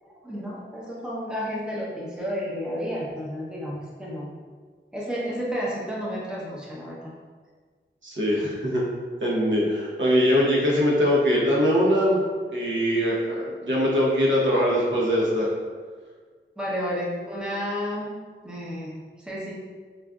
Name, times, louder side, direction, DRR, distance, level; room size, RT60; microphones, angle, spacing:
voice 1, 0.0-4.3 4.9-7.0 16.6-18.1 18.4-19.5, equal, 5° right, -5 dB, 0.7 m, -31 dB
voice 2, 8.0-8.8 9.2-12.2 12.5-15.5, equal, 65° right, -5 dB, 0.9 m, -22 dB
4.8 x 2.5 x 2.3 m, 1.5 s
wide cardioid pair, 100°, 21 cm